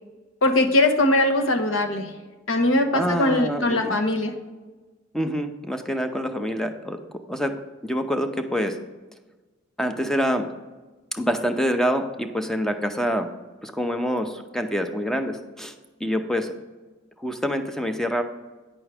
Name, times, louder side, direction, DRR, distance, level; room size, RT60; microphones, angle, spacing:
voice 1, 0.4-2.1 2.5-4.3, left 1 dB, 80° left, 5 dB, 1.0 m, -21 dB
voice 2, 2.9-4.0 5.1-7.0 7.3-8.8 9.8-10.5 11.1-13.3 13.6-15.7 16.0-16.6 17.2-18.2, equal, 5° left, 6 dB, 0.5 m, -26 dB
8.9 x 6.0 x 3.4 m, 1.3 s
head